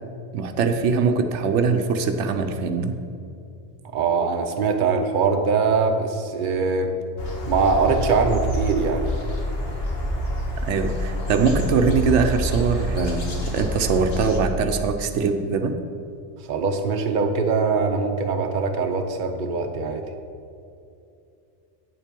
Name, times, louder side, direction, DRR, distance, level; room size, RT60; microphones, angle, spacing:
voice 1, 0.3-3.0 10.6-15.7, right 5 dB, 90° right, 6 dB, 1.0 m, -22 dB
voice 2, 3.9-6.9 7.5-9.1 16.5-20.0, right 4 dB, 50° right, 5 dB, 0.9 m, -22 dB
sound 1, 7.2-14.4, equal, 60° left, 1.8 m, -27 dB
8.7 x 7.3 x 5.2 m, 2.6 s
omnidirectional pair, 1.2 m